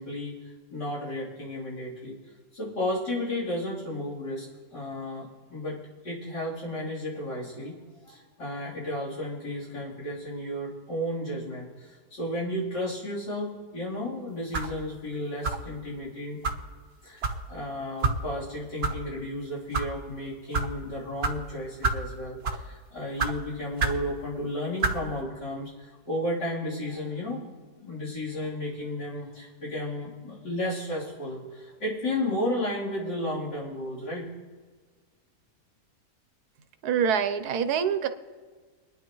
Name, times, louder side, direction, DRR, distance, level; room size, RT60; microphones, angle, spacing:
voice 1, 0.0-2.2 2.5-4.5 4.7-5.8 6.0-7.8 8.0-16.4 17.0-27.4 27.7-34.3, left 1 dB, 80° left, -8 dB, 4.3 m, -33 dB
sound 1, 14.5-14.8 15.4-15.7 16.4-16.6 17.2-17.4 18.0-18.2 18.8-18.9 19.6-19.9 20.5-20.7 21.2-21.4 21.8-22.1 22.4-22.7 23.2-23.3 23.8-24.0 24.8-25.0, right 4 dB, 45° right, 1.1 m, -27 dB
voice 2, 36.8-38.1, right 7 dB, 70° right, 10 dB, 1.3 m, -25 dB
24.5 x 10.0 x 3.1 m, 1.5 s
omnidirectional pair, 1.8 m